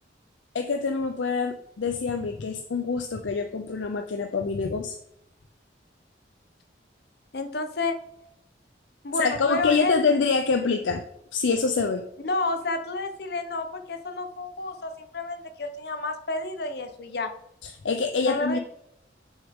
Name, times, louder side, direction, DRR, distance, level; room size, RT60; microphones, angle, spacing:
voice 1, 0.5-5.0 9.1-11.0 11.3-12.0 17.6-18.6, left 4 dB, 85° left, 6 dB, 0.5 m, -25 dB
voice 2, 7.3-8.0 9.0-10.1 12.2-17.3 18.3-18.6, left 2 dB, 60° left, 8 dB, 0.8 m, -30 dB
7.2 x 6.2 x 3.6 m, 0.79 s
head